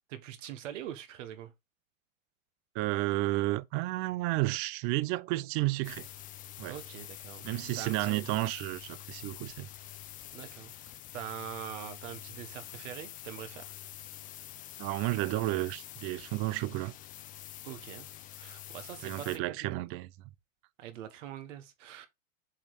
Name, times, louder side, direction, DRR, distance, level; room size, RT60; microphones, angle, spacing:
voice 1, 0.1-1.5 6.6-7.5 7.8-8.3 10.3-10.7 11.1-13.8 17.6-18.1 18.4-19.8 20.8-22.1, right 10 dB, 65° right, 1.4 m, -43 dB
voice 2, 2.7-6.1 6.6-6.8 7.4-9.7 14.8-16.9 19.0-20.1, right 18 dB, 35° right, 0.5 m, -32 dB
sound 1, 5.8-19.4, left 13 dB, 20° left, 0.4 m, -47 dB
7.3 x 3.1 x 4.2 m
hypercardioid pair, 115°, 40 cm